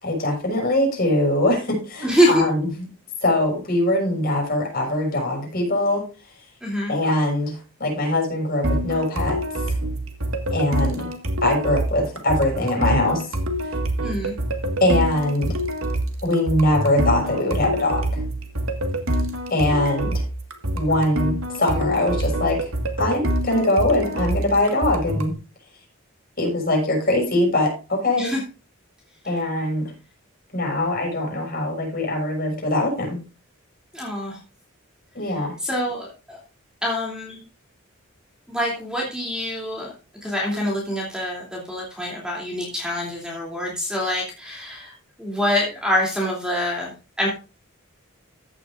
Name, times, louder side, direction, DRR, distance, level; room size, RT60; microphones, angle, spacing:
voice 1, 0.0-2.6 3.2-6.0 6.9-9.4 9.7-9.8 10.5-11.1 11.4-13.2 14.8-15.6 16.2-18.1 19.5-20.2 20.7-22.7 23.0-25.3 26.4-28.3 29.2-29.9 30.5-33.2 35.1-35.5, left 1 dB, 45° left, 0 dB, 6.6 m, -22 dB
voice 2, 2.0-2.5 6.6-7.0 14.0-14.4 28.2-28.4 29.2-29.4 33.9-34.4 35.6-36.4 36.8-37.4 38.5-39.9 40.2-47.3, equal, 5° right, -3 dB, 2.9 m, -25 dB
sound 1, 8.6-25.3, right 1 dB, 80° right, 1.8 m, -26 dB
15.0 x 9.1 x 2.5 m, 0.32 s
head